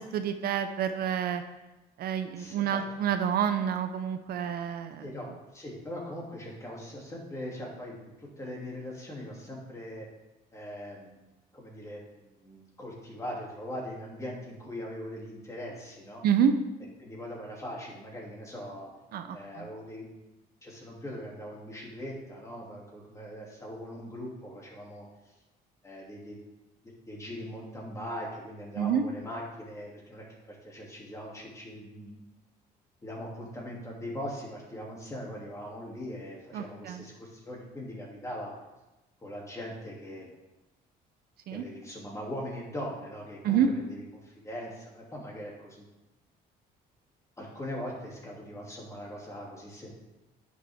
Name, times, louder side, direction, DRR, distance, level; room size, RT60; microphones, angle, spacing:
voice 1, 0.1-1.4 2.0-5.0 16.2-16.5 19.1-19.7 28.8-29.1 36.5-37.0 41.5-41.6 43.4-43.7, right 8 dB, 65° right, 8 dB, 0.7 m, -28 dB
voice 2, 2.4-2.8 5.0-10.1 10.5-11.2 11.5-16.2 17.0-18.9 19.3-20.3 20.6-25.3 25.8-26.4 27.1-32.2 33.0-38.5 39.2-40.3 41.5-45.9 47.4-49.9, equal, 20° left, -3 dB, 2.7 m, -41 dB
10.5 x 6.3 x 3.6 m, 1.0 s
cardioid pair, 110°, 17 cm